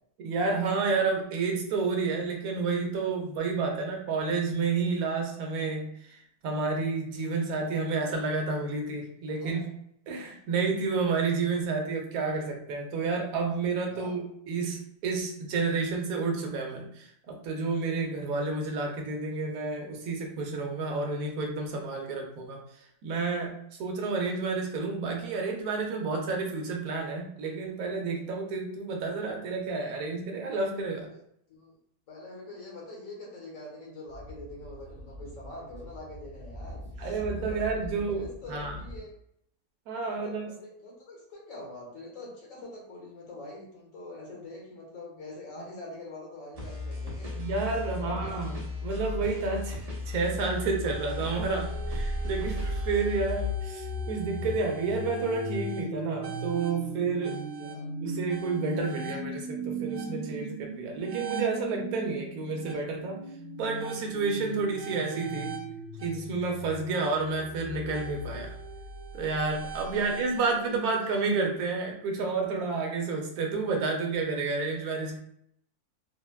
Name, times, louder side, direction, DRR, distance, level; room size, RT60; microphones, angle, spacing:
voice 1, 0.2-9.7 10.1-31.1 37.0-38.7 39.9-40.5 47.4-57.4 58.0-63.2 63.6-65.6 66.0-68.6 69.1-75.2, right 4 dB, 75° right, 1 dB, 1.0 m, -30 dB
voice 2, 9.3-9.7 10.2-10.4 13.9-14.1 31.0-31.2 31.5-31.8 32.1-39.1 40.0-47.4 47.8-48.4 57.3-57.9 69.8-70.9, left 2 dB, 60° left, -3 dB, 1.2 m, -45 dB
Speech / Wind, 34.1-39.0, equal, 10° left, 0.7 m, -43 dB
sound 1, 46.5-53.5, left 3 dB, 55° right, 0.4 m, -36 dB
sound 2, 50.8-70.6, right 1 dB, 35° right, 0.8 m, -37 dB
3.3 x 2.1 x 2.2 m, 0.71 s
omnidirectional pair, 1.6 m